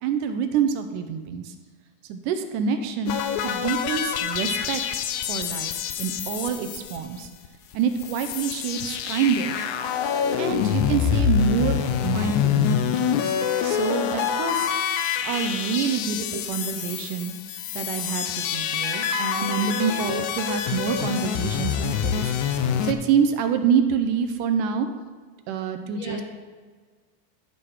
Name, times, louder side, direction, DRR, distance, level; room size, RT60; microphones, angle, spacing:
voice 1, 0.0-1.5 2.1-3.2 3.4-4.8 5.3-7.3 7.7-9.6 10.4-11.8 12.0-13.4 13.6-14.7 15.2-17.3 17.8-24.9 25.5-26.2, right 7 dB, 80° right, 7 dB, 2.1 m, -26 dB
sound 1, 3.1-7.5 7.7-7.8 8.0-22.9, left 8 dB, 80° left, 1.7 m, -26 dB
voice 2, 16.5-17.1 20.0-20.1 25.9-26.2, left 1 dB, 65° left, -1 dB, 1.9 m, -42 dB
13.0 x 4.6 x 4.7 m, 1.5 s
omnidirectional pair, 3.8 m